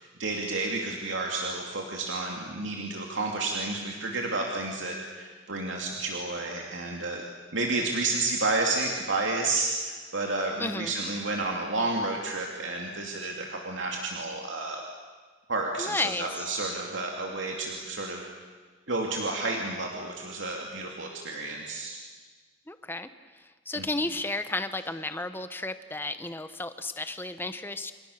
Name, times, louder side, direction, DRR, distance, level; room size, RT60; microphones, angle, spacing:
voice 1, 0.2-7.2 7.5-14.8 15.5-18.2 18.9-22.0 23.8-23.9, right 2 dB, 70° right, 0 dB, 2.9 m, -31 dB
voice 2, 10.6-10.9 15.8-16.5 22.7-23.1 23.7-27.9, left 2 dB, 10° left, 10 dB, 1.1 m, -32 dB
29.0 x 27.5 x 6.7 m, 1.4 s
head